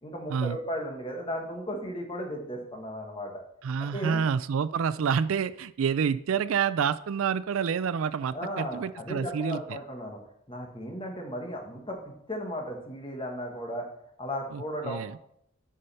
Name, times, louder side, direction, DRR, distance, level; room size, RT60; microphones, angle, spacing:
voice 1, 0.0-3.4 3.8-4.2 8.3-10.2 10.5-13.9 14.2-15.0, equal, 25° left, 1 dB, 1.6 m, -35 dB
voice 2, 3.6-9.8 14.5-15.1, right 7 dB, 75° right, 15 dB, 0.4 m, -28 dB
10.0 x 5.4 x 4.3 m, 0.71 s
head